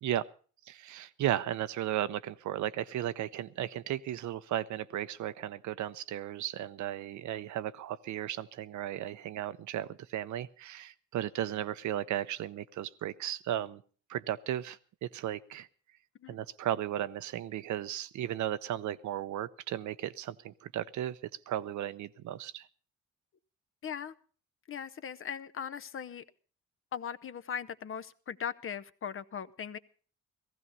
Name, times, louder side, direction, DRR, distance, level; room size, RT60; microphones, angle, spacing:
voice 1, 0.7-13.8 14.1-15.7 16.3-21.2 21.5-22.7, right 12 dB, 75° right, 0.7 m, -35 dB
voice 2, 23.8-24.1 24.7-26.2 26.9-29.8, left 8 dB, 45° left, 0.8 m, -39 dB
15.5 x 15.0 x 5.4 m
cardioid pair, 90°, 30 cm